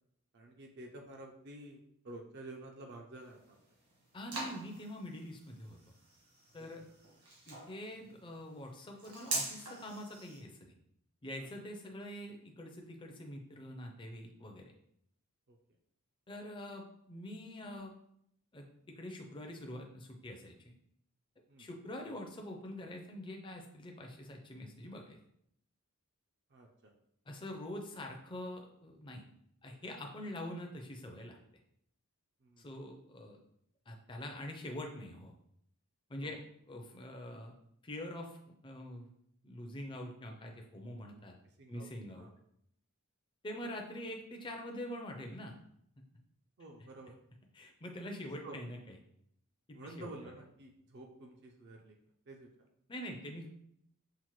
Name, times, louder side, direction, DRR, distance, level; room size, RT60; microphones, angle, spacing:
voice 1, 0.3-3.6 6.6-6.7 11.4-11.5 15.5-15.6 21.5-21.7 26.5-26.9 32.4-32.7 36.2-36.4 41.6-41.9 42.2-42.3 46.6-47.2 48.4-48.6 49.7-52.0 52.3-52.5, right 2 dB, 50° right, 2 dB, 0.4 m, -50 dB
sound 1, 3.2-10.4, right 2 dB, 75° right, 1.6 m, -44 dB
voice 2, 4.1-5.8 6.5-6.8 7.5-10.7 11.2-14.7 16.3-17.9 18.5-18.7 19.0-20.7 21.6-25.2 27.3-29.2 29.6-31.4 32.6-33.4 33.9-35.3 36.1-36.4 36.7-37.5 37.8-38.4 38.6-39.1 39.4-41.3 41.7-42.3 43.4-45.5 47.5-49.0 49.7-50.3 52.9-53.5, left 1 dB, 20° left, 2 dB, 0.4 m, -45 dB
5.6 x 2.1 x 3.1 m, 0.72 s
head